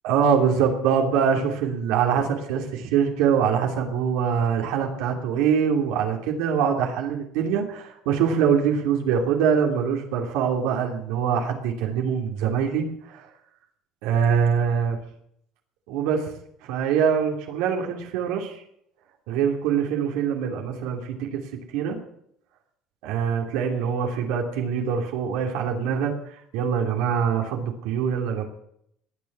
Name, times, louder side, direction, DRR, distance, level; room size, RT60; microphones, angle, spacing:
voice 1, 0.0-13.3 14.0-15.0 15.9-16.3 16.7-18.6 19.3-21.4 21.7-22.0 23.0-28.4, right 7 dB, 80° right, 2 dB, 2.9 m, -24 dB
19.0 x 7.0 x 9.5 m, 0.72 s
cardioid pair, 130°, 0 cm